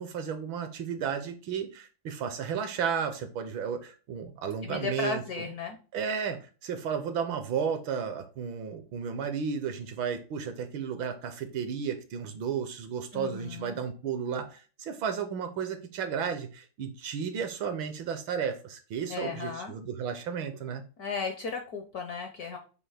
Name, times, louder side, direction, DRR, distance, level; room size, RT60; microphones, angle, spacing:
voice 1, 0.0-5.5 5.9-20.8, right 7 dB, 70° right, 1.4 m, -33 dB
voice 2, 4.6-5.8 13.1-13.8 19.1-19.7 21.0-22.6, left 5 dB, 60° left, 1.0 m, -35 dB
7.6 x 2.6 x 4.8 m
omnidirectional pair, 2.4 m